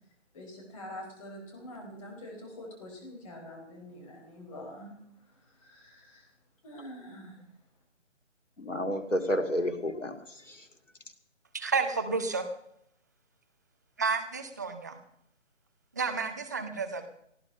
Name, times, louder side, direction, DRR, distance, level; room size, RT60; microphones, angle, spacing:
voice 1, 0.3-6.3 6.6-7.4, left 1 dB, 25° left, 2 dB, 4.7 m, -46 dB
voice 2, 8.6-10.7, left 1 dB, 75° left, 7 dB, 2.5 m, -31 dB
voice 3, 11.5-12.4 14.0-15.0 16.0-17.1, right 4 dB, 15° right, 7 dB, 0.7 m, -31 dB
19.0 x 13.5 x 5.5 m, 0.72 s
figure-of-eight pair, 145°, 37 cm